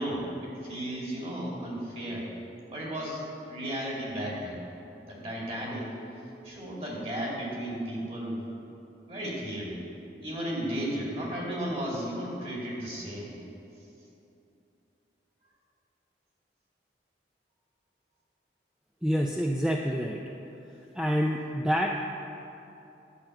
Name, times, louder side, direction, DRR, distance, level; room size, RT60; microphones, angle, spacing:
voice 1, 0.0-2.3 2.7-4.6 5.0-5.9 6.4-8.5 9.1-9.8 10.2-13.4, right 1 dB, 35° right, -4 dB, 2.3 m, -34 dB
voice 2, 19.0-20.2 21.0-22.0, equal, 5° right, 0 dB, 0.3 m, -27 dB
11.0 x 5.7 x 7.6 m, 2.8 s
head